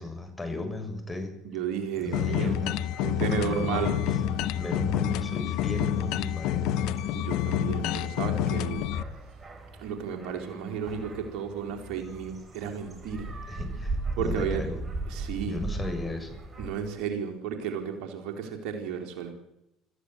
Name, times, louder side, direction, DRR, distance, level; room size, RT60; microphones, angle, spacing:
voice 1, 0.0-1.3 2.1-2.8 3.4-4.0 4.5-6.8 13.5-14.8 15.5-16.4, left 2 dB, 15° left, 5 dB, 7.0 m, -35 dB
voice 2, 1.4-2.6 3.0-4.0 7.1-8.9 9.8-13.3 14.2-14.6 15.1-15.6 16.6-19.3, right 7 dB, 65° right, 4 dB, 4.1 m, -33 dB
sound 1, 1.9-16.8, right 2 dB, 25° right, 6.7 m, -39 dB
sound 2, 2.1-9.0, left 10 dB, 65° left, 0.9 m, -28 dB
26.0 x 14.5 x 8.1 m, 0.85 s
hypercardioid pair, 65°, 0 cm